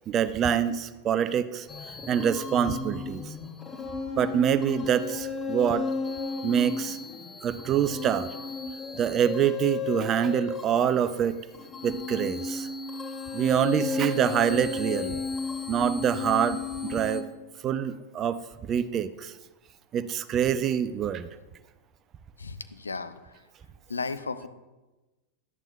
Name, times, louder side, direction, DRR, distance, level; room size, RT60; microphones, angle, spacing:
voice 1, 0.1-1.7 2.1-3.2 4.2-5.8 6.4-7.0 7.4-8.3 9.0-11.4 11.8-12.7 13.3-15.2 15.7-17.2 17.6-19.3 19.9-21.3, right 9 dB, 30° right, 13 dB, 0.4 m, -26 dB
sound 1, 1.7-17.2, left 4 dB, 20° left, 0.6 m, -34 dB
voice 2, 22.4-23.4 23.9-24.5, left 4 dB, 75° left, 11 dB, 0.4 m, -35 dB
11.0 x 8.9 x 2.2 m, 1.1 s
figure-of-eight pair, 90°, 0 cm